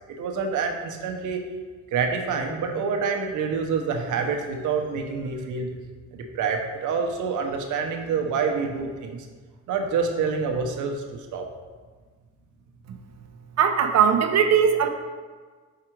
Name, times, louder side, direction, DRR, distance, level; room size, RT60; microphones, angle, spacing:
voice 1, 0.2-1.4 1.9-5.7 6.1-9.3 9.7-11.5, right 5 dB, 80° right, 3 dB, 0.9 m, -27 dB
voice 2, 13.6-14.9, right 7 dB, 60° right, 6 dB, 0.7 m, -19 dB
5.7 x 4.9 x 4.5 m, 1.5 s
cardioid pair, 90°, 30 cm